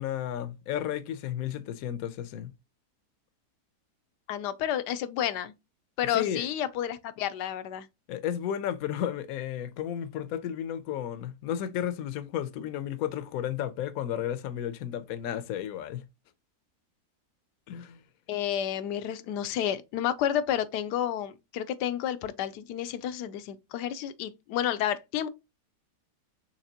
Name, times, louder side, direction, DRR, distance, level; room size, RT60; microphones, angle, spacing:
voice 1, 0.0-2.5 6.0-6.5 8.1-16.1 17.7-18.0, left 10 dB, 70° left, 1.0 m, -33 dB
voice 2, 4.3-5.5 6.0-7.9 18.3-25.3, left 10 dB, 90° left, 1.2 m, -30 dB
5.9 x 3.2 x 2.8 m
omnidirectional pair, 1.7 m